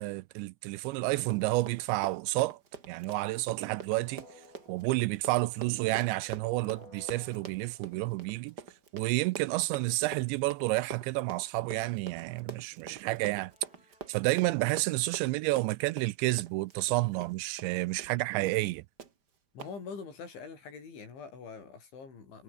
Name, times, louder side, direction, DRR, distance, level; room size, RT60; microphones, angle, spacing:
voice 1, 0.0-2.6 2.9-4.3 4.7-8.5 8.9-13.5 14.1-18.8, right 20 dB, 80° right, 2.7 m, -30 dB
Run, 1.1-17.7 18.0-18.2 18.5-18.7 19.0-19.1 19.6-19.7, right 6 dB, 55° right, 1.1 m, -46 dB
sound 1, 3.6-8.9 13.3-14.9, left 2 dB, 15° left, 5.5 m, -58 dB
voice 2, 19.5-22.4, left 5 dB, 75° left, 9.1 m, -44 dB
omnidirectional pair, 5.4 m